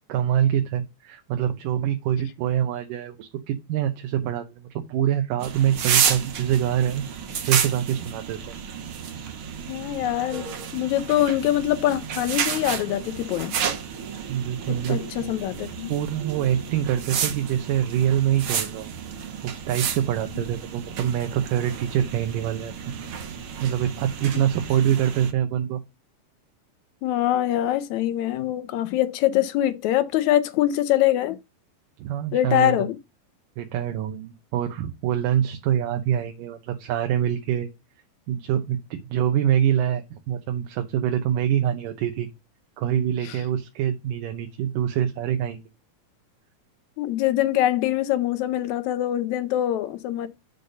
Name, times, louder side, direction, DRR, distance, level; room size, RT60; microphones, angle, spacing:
voice 1, 0.1-7.0 7.5-8.4 14.3-15.3 15.9-18.9 19.4-23.0 23.6-25.8 32.0-32.8 33.6-37.7 38.3-42.3 42.8-45.6, right 10 dB, 90° right, 2.5 m, -25 dB
sound 1, 5.4-25.3, right 7 dB, 60° right, 1.4 m, -31 dB
voice 2, 9.7-13.6 14.7-15.9 27.0-31.4 32.3-33.0 43.2-43.4 47.0-50.3, left 13 dB, 75° left, 1.8 m, -24 dB
6.6 x 4.0 x 6.4 m
omnidirectional pair, 3.7 m